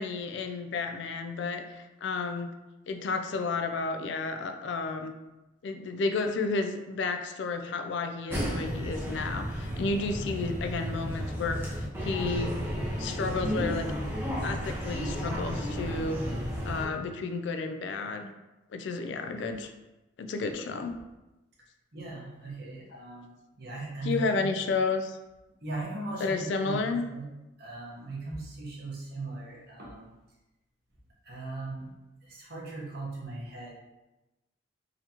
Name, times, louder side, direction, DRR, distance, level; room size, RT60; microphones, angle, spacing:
voice 1, 0.0-2.6 2.9-5.1 5.6-12.6 13.0-13.9 14.4-16.2 16.7-18.3 18.7-19.7 20.2-21.0 24.0-25.2 26.2-27.0, left 3 dB, 60° left, 6 dB, 0.3 m, -32 dB
sound 1, 8.3-16.8, equal, 10° right, 0.7 m, -33 dB
voice 2, 21.9-24.5 25.6-27.3 27.6-30.1 31.2-31.9 32.2-33.7, right 2 dB, 50° right, -4 dB, 1.0 m, -38 dB
4.0 x 2.9 x 2.8 m, 1.0 s
head